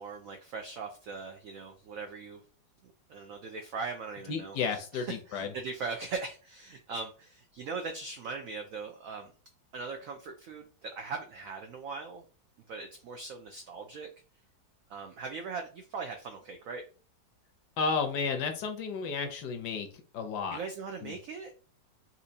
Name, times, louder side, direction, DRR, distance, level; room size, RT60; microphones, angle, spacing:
voice 1, 0.0-2.4 2.8-9.3 9.7-12.2 12.7-14.1 14.9-16.8 20.5-21.5, right 4 dB, 90° right, 4 dB, 0.7 m, -40 dB
voice 2, 4.3-5.5 17.8-19.9 20.1-20.6 21.0-21.1, left 5 dB, 70° left, 5 dB, 1.1 m, -32 dB
4.3 x 2.5 x 2.6 m, 0.38 s
omnidirectional pair, 2.0 m